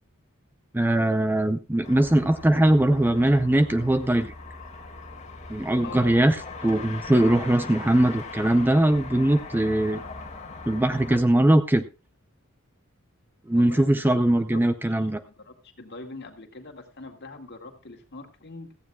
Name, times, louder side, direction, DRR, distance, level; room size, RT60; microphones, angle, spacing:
voice 1, 0.7-4.3 5.5-6.4 6.6-10.0 10.7-11.8 13.5-15.2, right 1 dB, 10° right, 0.5 m, -21 dB
sound 1, 1.8-11.2, left 3 dB, 35° left, 2.1 m, -40 dB
voice 2, 5.8-6.2 13.5-14.6 14.9-18.7, left 3 dB, 50° left, 2.1 m, -43 dB
16.5 x 14.5 x 2.3 m
head